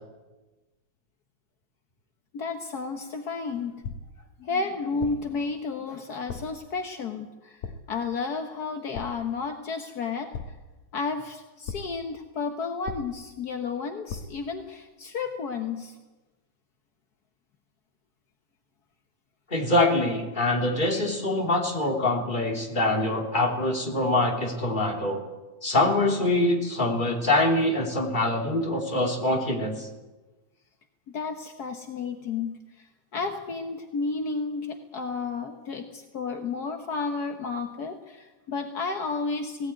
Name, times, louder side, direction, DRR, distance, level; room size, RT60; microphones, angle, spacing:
voice 1, 2.3-3.8 4.4-10.3 10.9-15.9 31.1-39.7, left 4 dB, 55° left, 5 dB, 1.1 m, -32 dB
sound 1, 3.8-4.3 5.0-5.4 6.3-6.7 7.6-8.1 8.9-9.4 10.3-10.9 11.7-12.1 12.9-13.4 14.1-14.5, left 5 dB, 75° left, 2.5 m, -39 dB
voice 2, 19.5-25.2 25.6-29.9, left 2 dB, 15° left, 0 dB, 3.3 m, -24 dB
19.5 x 17.5 x 9.4 m, 1.1 s
omnidirectional pair, 3.3 m